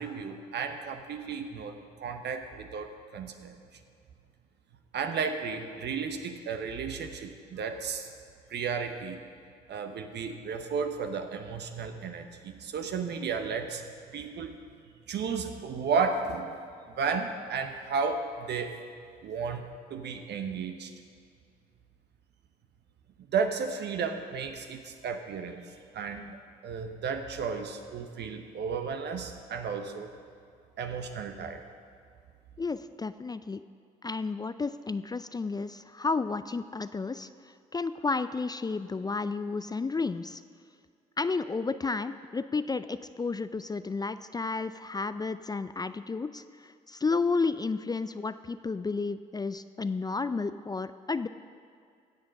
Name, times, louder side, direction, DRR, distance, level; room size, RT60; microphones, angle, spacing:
voice 1, 0.0-3.6 4.9-8.1 8.5-9.2 9.7-13.8 14.1-14.6 15.1-16.7 17.0-18.8 19.2-20.9 23.3-25.6 25.9-26.4 26.6-30.1 30.8-31.6, right 5 dB, 60° right, 6 dB, 1.0 m, -33 dB
voice 2, 32.6-33.6 34.0-37.3 37.7-40.4 41.2-51.3, left 4 dB, 20° left, 12 dB, 0.4 m, -32 dB
16.5 x 6.7 x 5.4 m, 2.3 s
hypercardioid pair, 55°, 20 cm